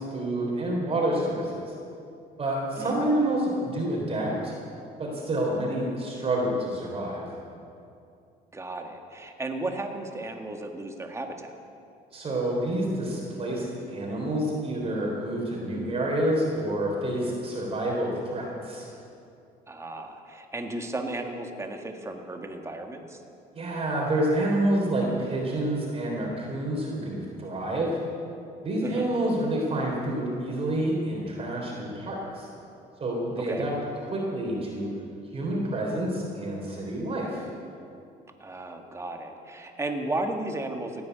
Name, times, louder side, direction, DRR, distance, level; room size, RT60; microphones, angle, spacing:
voice 1, 0.0-1.8 2.4-4.5 5.0-7.3 12.1-18.9 23.5-28.0 28.6-32.5 33.0-33.8 34.0-34.9 35.3-37.4, right 1 dB, 35° right, -2 dB, 3.7 m, -28 dB
voice 2, 8.5-11.5 19.7-23.2 28.8-29.1 33.5-33.7 38.4-41.0, right 2 dB, 15° right, 4 dB, 1.7 m, -34 dB
16.5 x 9.7 x 8.1 m, 2.5 s
cardioid pair, 110°, 17 cm